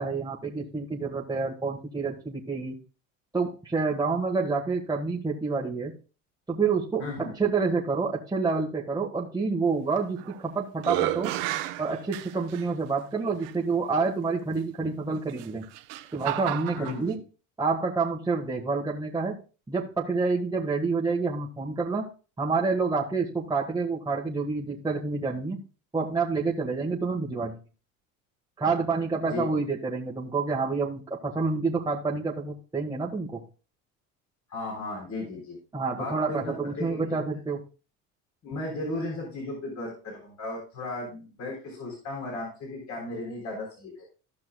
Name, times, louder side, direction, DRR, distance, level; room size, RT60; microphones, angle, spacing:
voice 1, 0.0-2.7 3.3-6.0 6.5-11.3 11.8-15.6 16.1-17.2 17.6-19.3 19.7-22.0 22.4-25.6 25.9-27.5 28.6-33.4 35.7-37.6, right 4 dB, 10° right, -3 dB, 1.5 m, -28 dB
voice 2, 7.0-7.4 16.8-17.2 29.3-29.5 34.5-35.6 35.9-37.2 38.4-44.1, left 2 dB, 50° left, -2 dB, 3.7 m, -35 dB
sound 1, 10.0-10.4 10.8-12.6 13.4-13.5 15.3-17.0, right 15 dB, 90° right, 1.0 m, -31 dB
15.0 x 5.8 x 2.3 m, 0.34 s
supercardioid pair, 100°, 35 cm